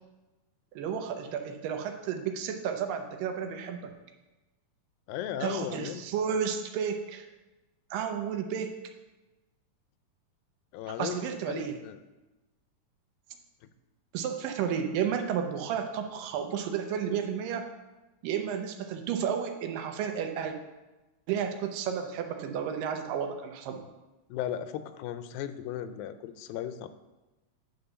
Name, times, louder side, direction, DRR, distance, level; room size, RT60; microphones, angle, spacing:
voice 1, 0.8-3.9 5.4-7.3 7.9-8.7 11.0-11.8 14.1-17.7 18.2-20.6 21.3-23.8, right 7 dB, 80° right, 5 dB, 2.4 m, -32 dB
voice 2, 5.1-6.0 10.7-11.2 11.5-12.0 24.3-26.9, left 10 dB, 90° left, 11 dB, 2.3 m, -36 dB
9.0 x 4.1 x 6.8 m, 1.1 s
omnidirectional pair, 4.0 m